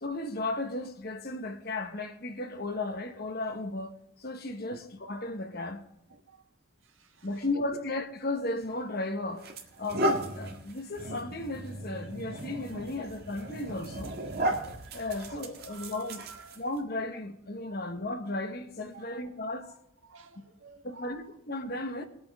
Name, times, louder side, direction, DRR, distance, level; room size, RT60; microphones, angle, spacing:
voice 1, 0.0-5.8 7.2-9.5 9.8-14.2 14.9-16.2 16.6-19.7 20.8-22.1, left 2 dB, 50° left, 1.3 m, -35 dB
voice 2, 6.1-6.4 7.0-7.3 7.5-7.6 11.9-12.0 12.7-13.1 14.9-15.2 15.7-16.6 17.6-17.9 18.9-19.3 19.6-19.7 20.0-21.2, right 4 dB, 70° right, 1.5 m, -52 dB
sound 1, 8.6-8.8 9.4-16.8, right 1 dB, 50° right, 1.8 m, -35 dB
20.5 x 8.7 x 3.6 m
head